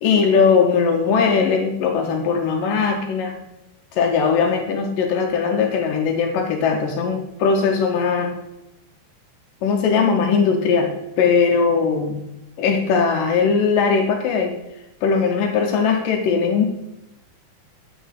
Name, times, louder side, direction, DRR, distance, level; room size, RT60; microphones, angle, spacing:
voice 1, 0.0-3.4 3.9-8.3 9.6-12.2 12.6-14.5 15.0-16.6, left 5 dB, 75° left, 3 dB, 2.0 m, -19 dB
10.0 x 4.5 x 6.4 m, 0.92 s
omnidirectional pair, 4.8 m